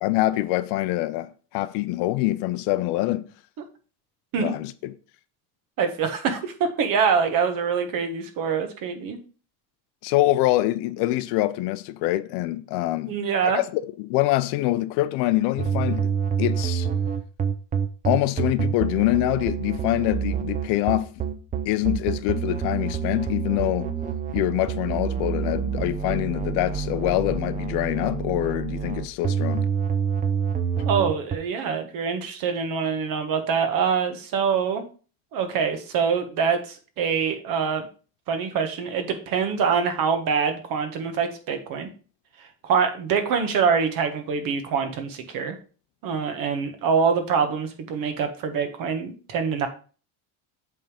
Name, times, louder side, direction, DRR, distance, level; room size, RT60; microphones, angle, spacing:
voice 1, 0.0-3.3 4.4-4.9 10.0-13.1 13.4-16.9 18.0-21.1 21.7-23.9 24.3-29.6, left 16 dB, 70° left, 0.7 m, -25 dB
voice 2, 5.8-9.2 13.1-13.6 30.8-34.8 35.3-37.9 38.3-41.9 42.6-45.5 46.0-49.7, right 6 dB, 55° right, 1.5 m, -25 dB
sound 1, 15.6-31.4, right 7 dB, 20° right, 0.6 m, -27 dB
7.9 x 3.8 x 5.0 m
cardioid pair, 140°, 41 cm